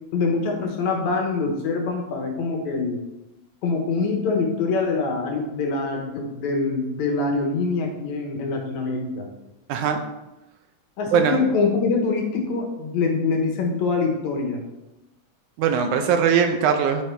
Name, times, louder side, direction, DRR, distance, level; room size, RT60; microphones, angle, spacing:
voice 1, 0.1-3.0 3.6-9.3 11.0-14.6, left 4 dB, 70° left, 1 dB, 2.3 m, -24 dB
voice 2, 9.7-10.0 11.1-11.4 15.6-17.0, right 7 dB, 80° right, 6 dB, 2.0 m, -20 dB
9.8 x 4.5 x 3.3 m, 0.98 s
omnidirectional pair, 3.6 m